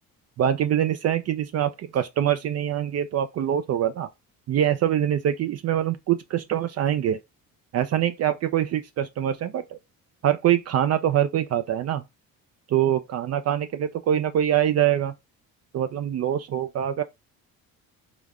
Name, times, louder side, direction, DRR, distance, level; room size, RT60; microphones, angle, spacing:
voice 1, 0.4-4.1 4.5-7.2 7.7-9.8 10.2-12.0 12.7-15.1 15.7-17.0, right 10 dB, 45° right, 0.4 m, -24 dB
5.1 x 2.1 x 3.5 m
cardioid pair, 115°, 35 cm